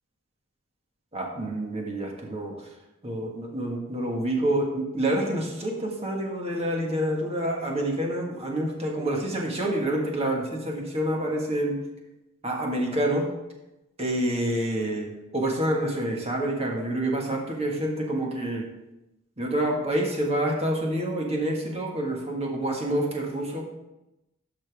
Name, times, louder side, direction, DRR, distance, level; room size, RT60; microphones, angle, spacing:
voice 1, 1.1-2.5 3.0-11.8 12.4-13.3 14.0-15.1 15.3-18.6 19.4-23.6, right 1 dB, 30° right, 0 dB, 1.6 m, -27 dB
11.5 x 5.9 x 3.5 m, 0.95 s
head